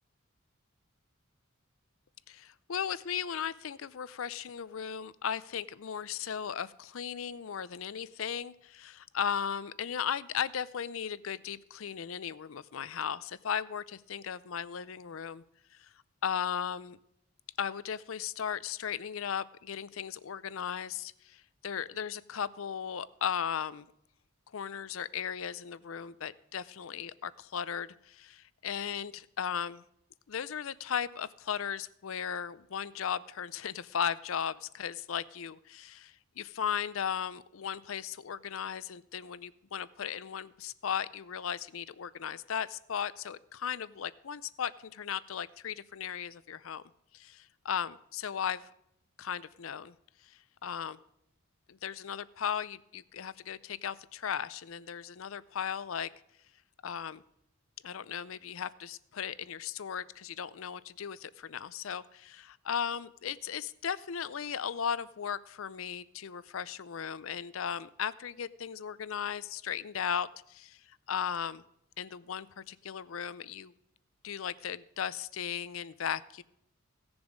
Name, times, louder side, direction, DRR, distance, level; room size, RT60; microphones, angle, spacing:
voice 1, 2.3-15.4 15.7-15.9 16.2-17.0 17.6-23.9 24.5-29.8 30.3-46.8 47.1-48.7 49.2-49.9 50.2-51.0 51.7-56.1 56.8-57.2 57.8-71.6 72.0-73.7 74.2-76.4, left 8 dB, 70° left, 18 dB, 0.5 m, -36 dB
17.0 x 7.0 x 5.1 m, 0.75 s
head